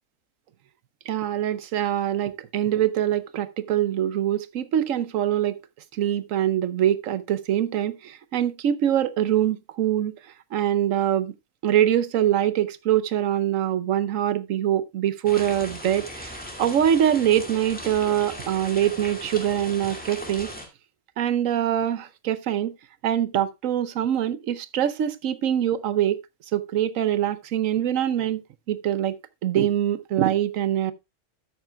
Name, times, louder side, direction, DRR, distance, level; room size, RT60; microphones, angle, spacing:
voice 1, 1.1-5.6 5.9-10.1 10.5-11.3 11.6-20.5 21.2-22.7 23.0-26.2 26.5-28.4 28.7-30.9, right 11 dB, 80° right, 1.1 m, -24 dB
sound 1, 15.2-20.6, equal, 5° left, 2.2 m, -38 dB
12.5 x 9.0 x 2.3 m
omnidirectional pair, 1.3 m